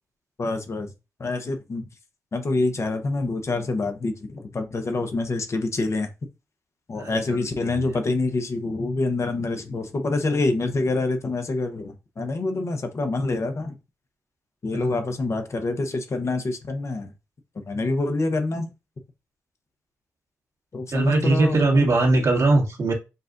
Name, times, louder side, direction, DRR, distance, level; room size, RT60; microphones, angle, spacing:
voice 1, 0.4-0.9 1.2-1.9 2.3-6.1 6.9-13.7 14.6-17.1 17.5-18.7 20.7-21.9, left 2 dB, 50° left, 1.0 m, -26 dB
voice 2, 7.0-7.4 7.7-7.9 14.7-14.8 20.9-22.9, right 2 dB, 55° right, 1.6 m, -20 dB
6.7 x 2.5 x 2.5 m
supercardioid pair, 40°, 6 cm